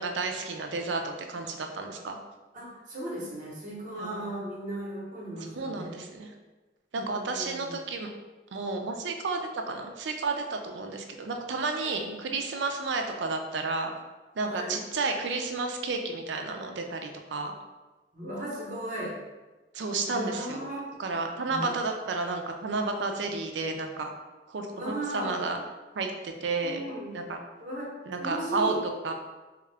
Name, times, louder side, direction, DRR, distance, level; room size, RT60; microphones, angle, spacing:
voice 1, 0.0-2.2 4.0-4.3 5.6-6.3 6.9-8.1 8.5-13.9 14.4-17.5 19.7-20.7 21.0-24.1 24.5-25.6 25.9-26.8 27.1-27.4 28.1-28.7 29.0-29.1, right 3 dB, 75° right, 4 dB, 0.4 m, -31 dB
voice 2, 2.5-6.1 6.9-7.8 11.8-12.1 14.5-14.8 18.1-19.1 20.1-20.9 21.5-21.7 24.7-25.4 26.6-27.2 27.6-28.8, right 1 dB, 45° right, -4 dB, 1.0 m, -36 dB
3.6 x 2.4 x 3.3 m, 1.2 s
head